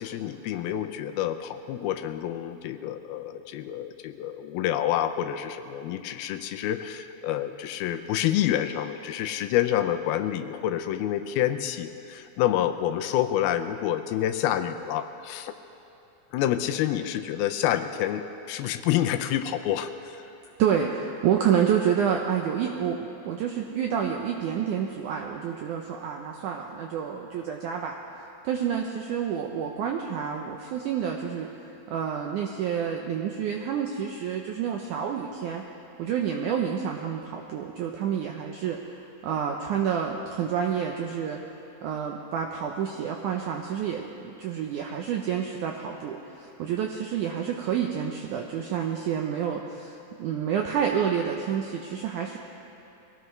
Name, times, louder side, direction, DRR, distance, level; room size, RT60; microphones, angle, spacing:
voice 1, 0.0-15.5 16.3-20.2, left 11 dB, 85° left, 8 dB, 2.4 m, -28 dB
voice 2, 20.6-27.9 28.4-31.5 31.9-35.6 36.0-41.4 41.8-52.4, right 8 dB, 80° right, 1 dB, 1.8 m, -28 dB
22.5 x 17.5 x 3.2 m, 2.9 s
omnidirectional pair, 4.4 m